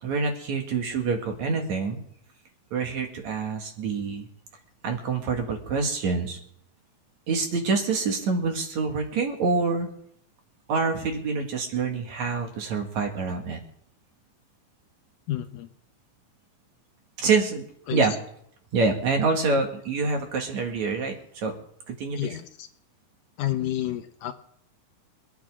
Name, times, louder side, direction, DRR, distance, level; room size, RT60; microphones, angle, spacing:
voice 1, 0.0-2.0 2.7-4.3 4.8-6.4 7.3-9.9 10.7-13.6 17.2-17.7 17.9-18.1 18.7-21.6 21.9-22.3, right 4 dB, 55° right, 3 dB, 3.0 m, -26 dB
voice 2, 15.3-15.7 17.9-18.0 22.2-22.7 23.4-24.3, left 13 dB, 75° left, 8 dB, 2.1 m, -30 dB
27.5 x 9.8 x 3.7 m, 0.69 s
omnidirectional pair, 4.4 m